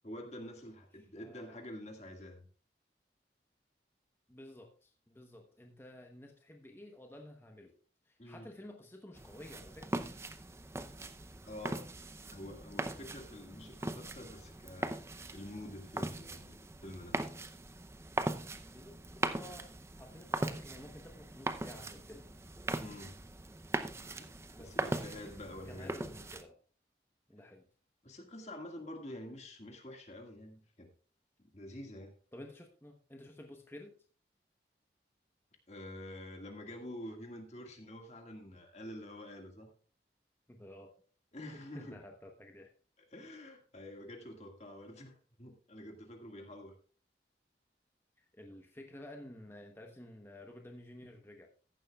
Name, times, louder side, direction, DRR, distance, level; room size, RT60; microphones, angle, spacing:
voice 1, 0.0-2.5 8.2-8.5 11.5-11.9 12.3-15.0 15.3-17.3 22.8-23.2 24.6-26.1 28.0-30.9 31.5-32.1 35.7-39.7 41.3-42.0 43.1-46.8, left 1 dB, 40° left, 3 dB, 1.9 m, -47 dB
voice 2, 1.1-1.6 4.3-7.7 8.0-10.0 18.3-22.3 24.5-25.1 25.7-26.6 27.3-27.7 32.3-33.9 40.5-40.9 41.5-42.7 48.2-51.5, left 1 dB, 15° left, 3 dB, 1.0 m, -52 dB
sound 1, 9.2-26.4, right 2 dB, 15° right, 0.6 m, -40 dB
14.5 x 11.0 x 2.3 m, 0.39 s
head